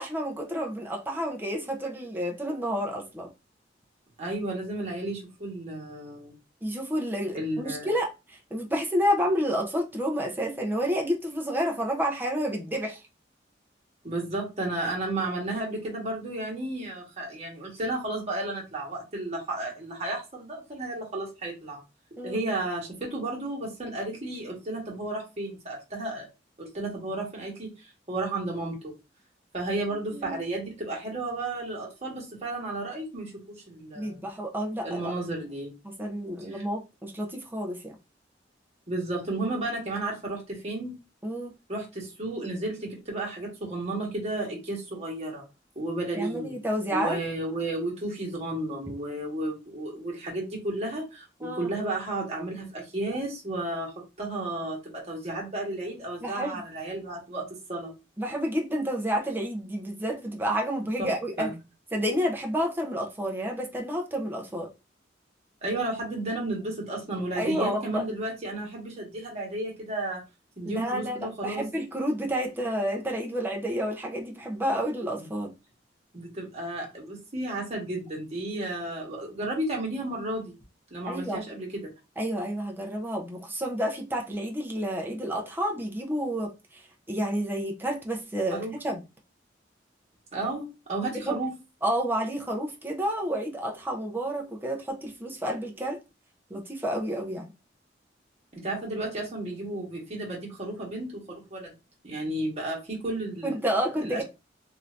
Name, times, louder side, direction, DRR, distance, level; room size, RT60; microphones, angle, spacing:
voice 1, 0.0-3.3 6.6-13.0 22.2-22.5 29.9-30.4 33.9-35.1 35.8-37.9 41.2-41.5 46.1-47.2 51.4-51.7 56.2-56.6 58.2-61.5 61.9-64.7 67.4-68.0 70.7-75.5 81.1-81.4 82.2-89.0 91.2-91.4 91.8-96.0 96.5-97.5 103.4-104.2, equal, 10° right, 0.6 m, -30 dB
voice 2, 4.2-6.3 7.3-7.9 14.0-21.8 22.2-26.3 26.6-27.7 28.1-28.9 29.5-34.3 34.8-35.7 36.5-36.6 38.9-41.0 41.7-45.4 45.7-46.6 46.9-53.9 54.2-57.9 61.0-61.1 61.4-61.6 65.6-70.2 70.6-71.6 76.1-80.5 80.9-81.7 88.5-88.7 90.3-91.5 98.5-101.7 102.0-103.6 104.0-104.2, right 2 dB, 35° right, 1.4 m, -33 dB
3.3 x 2.7 x 2.5 m
head